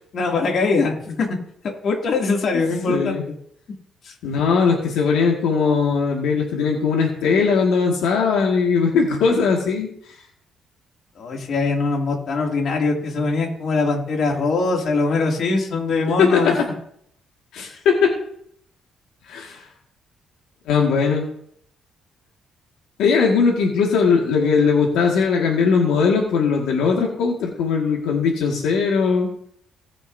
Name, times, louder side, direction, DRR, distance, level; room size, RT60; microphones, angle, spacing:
voice 1, 0.1-1.3 1.8-3.3 4.0-4.1 11.2-16.5 17.7-17.8, left 3 dB, 60° left, 0 dB, 2.6 m, -22 dB
voice 2, 2.9-3.2 4.2-9.9 16.2-16.6 17.5-18.1 19.3-19.6 20.7-21.3 23.0-29.3, left 5 dB, 90° left, -1 dB, 1.9 m, -19 dB
19.0 x 6.4 x 2.7 m, 0.69 s
cardioid pair, 90°, 0 cm